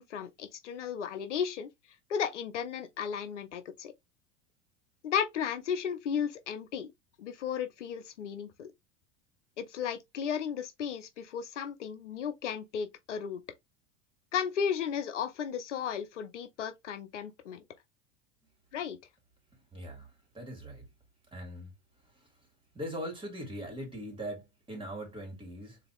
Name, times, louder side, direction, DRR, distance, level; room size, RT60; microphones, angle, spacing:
voice 1, 0.0-1.7 2.1-3.9 5.0-6.9 7.2-8.7 9.6-13.4 14.3-17.6 18.7-19.0, left 7 dB, 90° left, 0.7 m, -34 dB
voice 2, 19.7-20.9 21.3-21.7 22.7-25.8, equal, 15° right, 2.7 m, -41 dB
3.9 x 2.9 x 3.0 m
hypercardioid pair, 90°, 35 cm